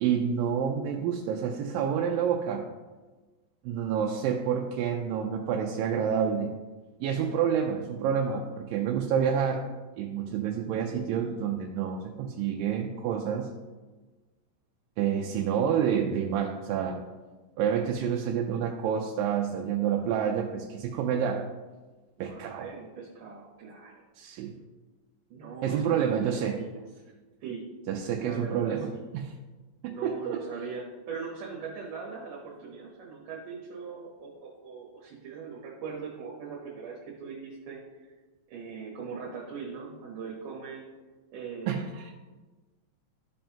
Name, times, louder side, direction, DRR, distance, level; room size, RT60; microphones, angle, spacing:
voice 1, 0.0-2.7 3.7-6.5 7.0-9.7 10.0-13.5 15.0-17.0 17.6-21.5 22.2-22.7 24.2-24.5 25.6-26.6 27.9-29.3 29.8-30.4 41.7-42.1, right 8 dB, 85° right, 1 dB, 2.4 m, -28 dB
voice 2, 22.2-24.0 25.3-26.8 27.4-27.6 28.2-29.0 29.9-38.1 38.5-40.8 41.3-41.8, right 5 dB, 70° right, -3 dB, 2.7 m, -41 dB
13.5 x 5.4 x 2.9 m, 1.3 s
omnidirectional pair, 4.0 m